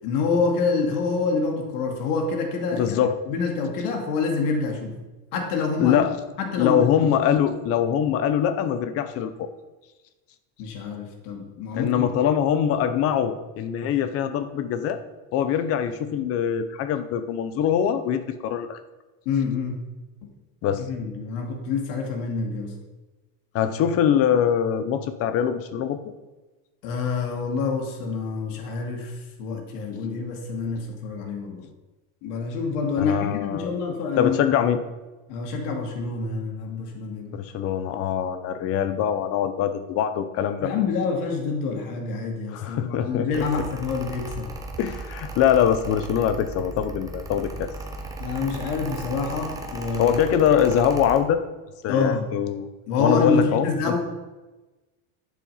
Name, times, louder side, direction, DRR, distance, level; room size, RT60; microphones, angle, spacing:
voice 1, 0.0-3.0 3.3-5.0 5.3-6.0 6.4-6.9 10.6-12.1 19.3-19.8 20.9-22.7 26.8-29.1 29.4-31.6 32.2-34.6 35.3-37.4 40.6-44.5 48.2-50.2 51.9-52.3 52.9-54.0, left 4 dB, 85° left, 2 dB, 2.5 m, -27 dB
voice 2, 2.7-3.2 5.8-6.2 6.6-9.5 11.7-15.0 15.3-18.8 20.6-20.8 23.5-26.0 33.0-33.7 34.2-34.8 37.3-40.7 42.5-43.7 44.8-47.7 50.0-51.4 51.8-52.7 53.0-54.0, left 9 dB, 30° left, 10 dB, 0.7 m, -23 dB
Mechanical fan, 43.3-51.2, right 3 dB, 10° right, 0.8 m, -36 dB
11.0 x 7.5 x 5.7 m, 1.1 s
cardioid pair, 175°, 45 cm